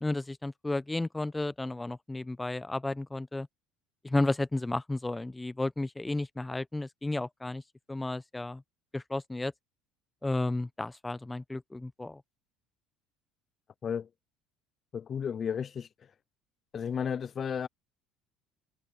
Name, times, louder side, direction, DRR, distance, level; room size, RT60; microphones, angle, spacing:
voice 1, 0.0-3.5 4.0-7.6 7.9-8.6 8.9-9.5 10.2-12.2, left 2 dB, 10° left, 0.8 m, -33 dB
voice 2, 14.9-15.9 16.7-17.7, left 7 dB, 40° left, 0.5 m, -33 dB
supercardioid pair, 85°, 0 cm